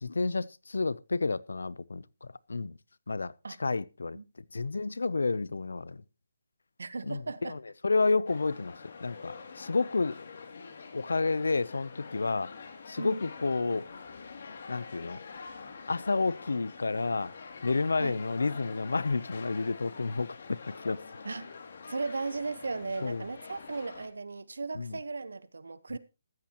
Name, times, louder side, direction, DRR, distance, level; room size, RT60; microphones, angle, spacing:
voice 1, 0.0-2.8 3.1-3.3 3.6-4.2 4.5-6.0 7.1-10.3 10.9-12.5 12.9-13.9 14.7-15.2 15.9-17.3 17.6-21.0 23.0-23.2 24.7-25.0, left 3 dB, 85° left, 0.7 m, -30 dB
voice 2, 6.8-7.5 13.0-13.3 18.0-18.2 21.2-21.5 21.9-26.0, right 3 dB, 85° right, 1.2 m, -36 dB
sound 1, 8.3-24.1, left 5 dB, 60° left, 2.8 m, -46 dB
14.5 x 13.0 x 3.0 m
hypercardioid pair, 160°, 0 cm